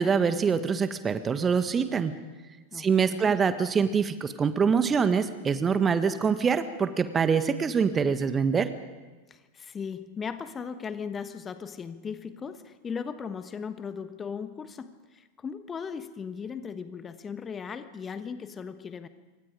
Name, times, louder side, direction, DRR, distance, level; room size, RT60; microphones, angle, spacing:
voice 1, 0.0-2.1 2.7-8.7, right 6 dB, 20° right, 11 dB, 1.5 m, -25 dB
voice 2, 2.7-3.4 9.3-19.1, left 6 dB, 20° left, 11 dB, 1.2 m, -37 dB
27.5 x 24.5 x 5.1 m, 1.3 s
figure-of-eight pair, 90°, 0 cm